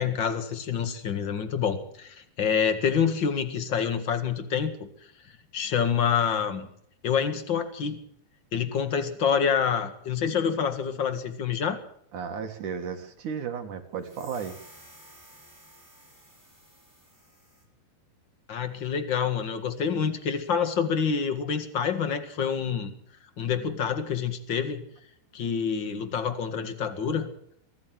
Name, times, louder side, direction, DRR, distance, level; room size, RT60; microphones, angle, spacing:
voice 1, 0.0-4.9 5.5-6.7 7.0-8.0 8.5-11.8 18.5-22.9 23.4-24.8 25.3-27.3, left 7 dB, 85° left, 9 dB, 1.0 m, -27 dB
voice 2, 12.1-14.6, right 6 dB, 55° right, 6 dB, 2.5 m, -34 dB
sound 1, 14.0-17.7, right 1 dB, 5° left, 6.3 m, -53 dB
24.0 x 14.5 x 7.5 m, 0.68 s
omnidirectional pair, 5.3 m